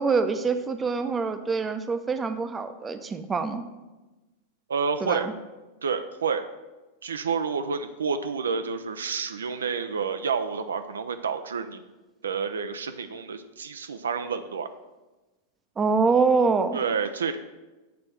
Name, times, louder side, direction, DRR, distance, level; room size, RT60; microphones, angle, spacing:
voice 1, 0.0-3.6 5.0-5.3 15.8-16.8, right 4 dB, 15° right, 9 dB, 0.6 m, -25 dB
voice 2, 4.7-5.3 5.8-6.5 7.0-11.8 12.2-14.7 16.7-17.4, right 5 dB, 70° right, 9 dB, 0.4 m, -29 dB
8.3 x 4.2 x 6.1 m, 1.1 s
figure-of-eight pair, 90°, 0 cm